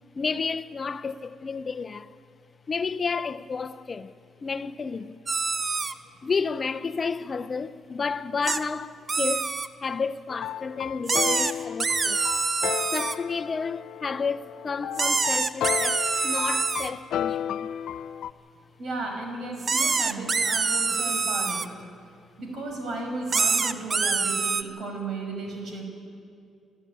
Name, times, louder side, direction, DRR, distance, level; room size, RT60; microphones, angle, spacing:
voice 1, 0.1-2.1 2.7-4.1 4.4-5.2 6.2-9.5 9.8-12.2 12.9-17.7, left 5 dB, 35° left, 0.6 m, -31 dB
sound 1, 5.3-5.9 8.5-8.6 9.1-9.7 11.1-13.2 15.0-16.9 19.6-21.7 23.3-24.6, right 4 dB, 40° right, 0.8 m, -25 dB
sound 2, 10.3-18.3, left 10 dB, 75° left, 0.5 m, -33 dB
voice 2, 18.8-21.8 22.4-25.9, right 2 dB, 60° right, 5.7 m, -34 dB
27.0 x 12.5 x 9.4 m
cardioid pair, 90°, 0 cm